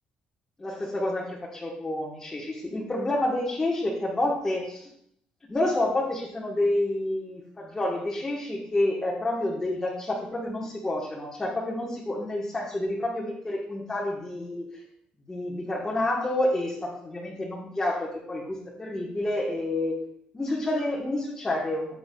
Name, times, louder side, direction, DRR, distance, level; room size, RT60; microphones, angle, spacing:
voice 1, 0.6-4.9 5.5-14.8 15.3-19.9 20.3-22.0, left 1 dB, 15° left, -4 dB, 1.1 m, -29 dB
13.0 x 8.0 x 2.2 m, 0.71 s
cardioid pair, 180°, 3 cm